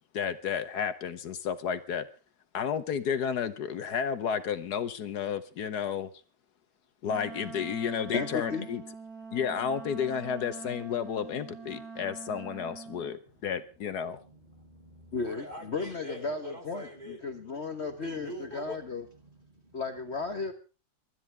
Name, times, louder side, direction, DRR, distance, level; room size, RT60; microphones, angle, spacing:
voice 1, 0.1-2.1 2.5-6.1 7.0-8.8 9.3-14.2, left 7 dB, 70° left, 1.4 m, -32 dB
Wind instrument woodwind instrument, 7.0-13.1, right 5 dB, 60° right, 2.7 m, -44 dB
voice 2, 8.1-8.7 15.1-19.0 19.7-20.5, left 4 dB, 45° left, 1.4 m, -34 dB
voice 3, 14.0-17.4 17.8-19.8, equal, 25° right, 3.8 m, -46 dB
24.5 x 12.5 x 3.4 m
omnidirectional pair, 1.8 m